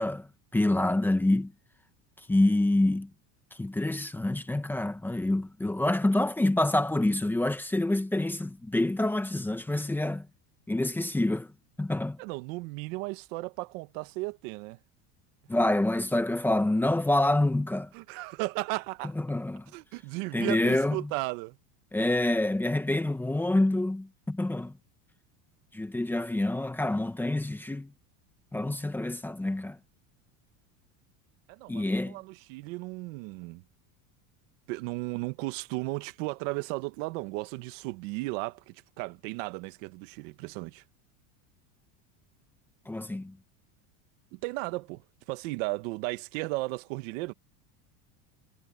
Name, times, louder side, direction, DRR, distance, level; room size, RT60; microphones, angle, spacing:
voice 1, 0.0-1.5 2.3-3.1 3.6-10.3 10.7-11.5 11.8-12.2 15.5-17.9 19.2-19.6 20.3-21.1 21.9-24.7 25.7-27.9 28.5-29.8 31.7-32.2 42.9-43.4, left 1 dB, 5° left, 1.1 m, -27 dB
voice 2, 12.2-14.8 17.9-19.1 19.7-21.6 31.5-33.6 34.7-40.8 44.3-47.3, right 22 dB, 65° right, 1.3 m, -35 dB
cardioid pair, 160°, 42 cm